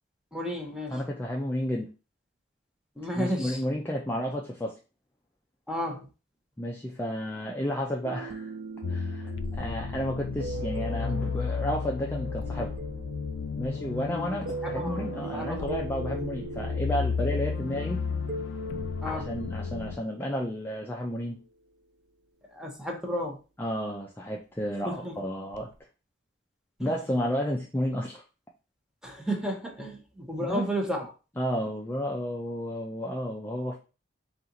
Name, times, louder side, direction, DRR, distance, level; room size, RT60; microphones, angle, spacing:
voice 1, 0.3-1.0 3.0-3.6 5.7-6.1 14.0-14.4 14.8-15.9 19.0-19.3 22.5-23.4 24.8-25.2 26.8-26.9 29.0-31.1, equal, 5° right, 1 dB, 0.8 m, -33 dB
voice 2, 0.9-1.9 3.1-4.7 6.6-8.5 8.9-12.7 13.6-18.0 19.0-21.4 23.6-25.7 26.8-28.2 30.4-30.7 31.4-33.8, equal, 10° left, -1 dB, 0.4 m, -32 dB
sound 1, 8.0-21.2 25.5-25.7, right 3 dB, 70° right, 0.5 m, -40 dB
sound 2, 8.8-20.0, left 5 dB, 85° left, 0.4 m, -33 dB
4.2 x 2.5 x 3.8 m, 0.33 s
head